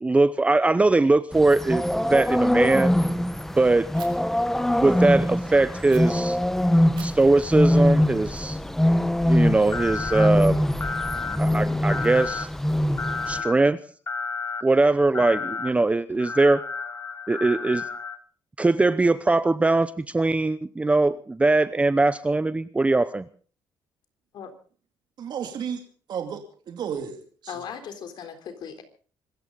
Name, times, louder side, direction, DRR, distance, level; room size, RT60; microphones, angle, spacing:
voice 1, 0.0-2.9 3.5-3.9 4.7-6.4 7.0-8.6 9.3-10.6 11.4-12.5 13.3-13.8 14.6-16.6 17.3-17.9 18.6-23.3, right 2 dB, 15° right, 0.8 m, -21 dB
sound 1, 1.3-13.4, left 1 dB, 5° left, 1.1 m, -23 dB
Fire, 3.9-4.1 5.9-6.0 7.0-8.9, right 11 dB, 80° right, 4.2 m, -49 dB
sound 2, 9.7-10.3 10.8-11.4 11.9-12.5 13.0-13.5 14.1-14.6 15.1-15.7 16.2-18.2, left 4 dB, 30° left, 1.9 m, -31 dB
voice 2, 25.2-25.8 26.1-27.6, right 7 dB, 60° right, 2.5 m, -33 dB
voice 3, 27.5-28.8, left 7 dB, 65° left, 3.7 m, -37 dB
25.5 x 14.0 x 4.0 m
cardioid pair, 105°, 8 cm